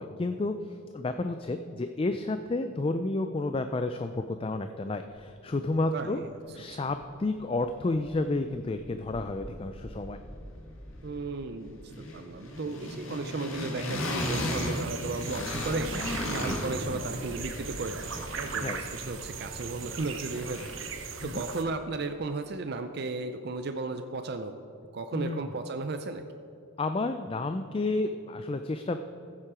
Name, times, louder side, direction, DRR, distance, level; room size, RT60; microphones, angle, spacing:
voice 1, 0.0-6.2 6.5-10.2 16.4-16.6 18.6-18.8 21.2-21.4 25.1-25.4 26.8-29.0, left 2 dB, 25° left, 8 dB, 0.3 m, -31 dB
voice 2, 5.9-6.8 11.0-24.5 24.9-26.2, right 3 dB, 50° right, 8 dB, 0.4 m, -35 dB
sound 1, 7.0-7.1 7.4-8.5 8.8-21.0, left 1 dB, 75° left, 1.8 m, -37 dB
sound 2, 14.2-21.6, right 6 dB, 65° right, 0.9 m, -39 dB
15.0 x 7.4 x 4.9 m, 2.7 s
head